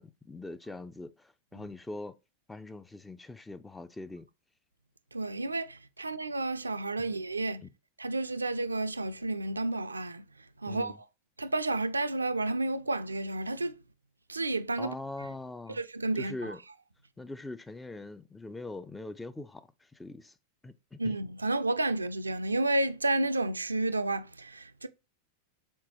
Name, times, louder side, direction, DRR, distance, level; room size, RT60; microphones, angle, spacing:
voice 1, 0.0-2.2 2.5-4.3 7.0-7.2 7.6-7.7 10.7-11.0 14.8-15.8 16.1-16.6 17.2-20.3 20.6-21.2, left 2 dB, 10° left, 0.3 m, -42 dB
voice 2, 5.1-7.6 8.0-10.3 10.6-11.1 11.4-13.8 14.3-15.0 15.7-16.6 21.0-24.9, right 2 dB, 80° right, 0.3 m, -31 dB
4.4 x 3.9 x 2.9 m
figure-of-eight pair, 90°, 0 cm